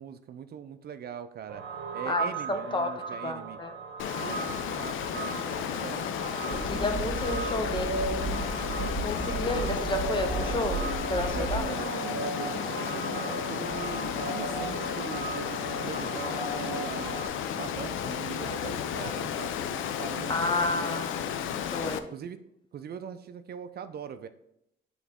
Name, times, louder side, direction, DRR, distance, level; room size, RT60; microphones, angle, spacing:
voice 1, 0.0-1.7 1.9-3.6 4.2-6.1 11.3-17.2 17.5-21.0 22.1-22.4 22.7-24.3, right 8 dB, 55° right, 10 dB, 0.5 m, -41 dB
sound 1, 1.5-17.3, right 4 dB, 90° right, 0.8 m, -37 dB
voice 2, 2.1-3.7 5.7-5.8 6.5-10.8 11.1-11.8 20.3-21.2 21.7-22.0, left 2 dB, 25° left, 7 dB, 0.8 m, -32 dB
Water, 4.0-22.0, left 9 dB, 85° left, 0.5 m, -33 dB
sound 2, 6.5-11.6, right 3 dB, 20° right, 1.2 m, -35 dB
7.1 x 3.9 x 3.6 m, 0.77 s
cardioid pair, 90°, 20 cm